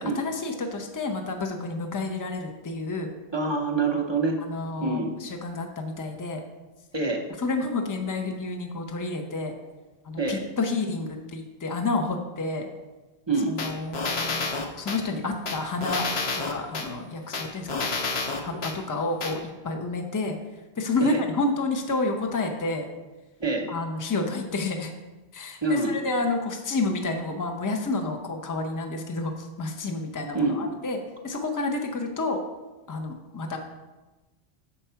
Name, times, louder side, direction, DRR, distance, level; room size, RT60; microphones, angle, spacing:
voice 1, 0.0-3.1 4.5-6.4 7.4-9.5 10.0-12.7 13.5-16.1 16.3-17.9 18.4-20.4 20.8-22.9 23.7-24.9 25.3-31.0 31.2-32.4 32.9-33.6, left 3 dB, 20° left, 4 dB, 0.6 m, -30 dB
voice 2, 3.3-4.4 4.8-5.1 6.9-7.2 10.2-10.4 13.3-13.5 21.0-21.2 23.4-23.7 25.6-25.9 30.3-30.7, right 3 dB, 30° right, 2 dB, 0.7 m, -25 dB
sound 1, 13.6-15.0 15.5-16.9 17.3-18.8 19.2-19.3, left 3 dB, 70° left, 1.1 m, -29 dB
7.0 x 4.4 x 5.6 m, 1.2 s
omnidirectional pair, 1.1 m